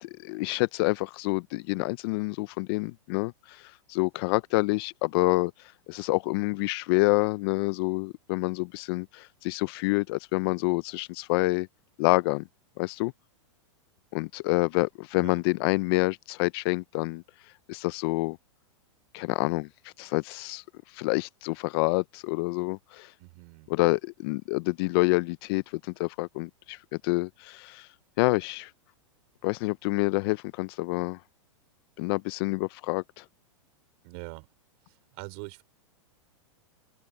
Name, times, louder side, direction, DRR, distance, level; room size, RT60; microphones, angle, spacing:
voice 1, 0.0-5.5 5.9-11.7 12.0-12.4 12.8-13.1 14.1-17.2 17.7-18.4 19.1-20.6 20.9-23.1 23.7-27.9 28.2-28.7 29.4-31.2 32.0-33.2, left 24 dB, 50° left, 0.6 m, -27 dB
voice 2, 23.2-23.7 34.0-34.5 34.9-35.6, right 33 dB, 50° right, 5.0 m, -43 dB
open air
hypercardioid pair, 125°, 17 cm